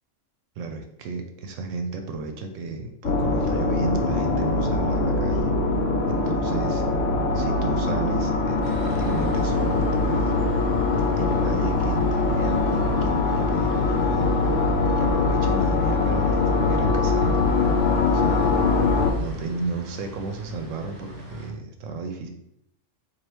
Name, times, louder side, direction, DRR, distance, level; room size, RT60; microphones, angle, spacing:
voice 1, 0.6-5.5 6.0-6.8 7.3-14.3 14.9-17.4 18.0-18.5 19.1-22.3, right 3 dB, 85° right, 5 dB, 1.0 m, -33 dB
sound 1, 3.0-19.1, left 3 dB, 80° left, 0.9 m, -22 dB
sound 2, 8.6-21.5, left 1 dB, 55° right, 1.3 m, -41 dB
4.6 x 2.6 x 3.0 m, 0.79 s
omnidirectional pair, 1.3 m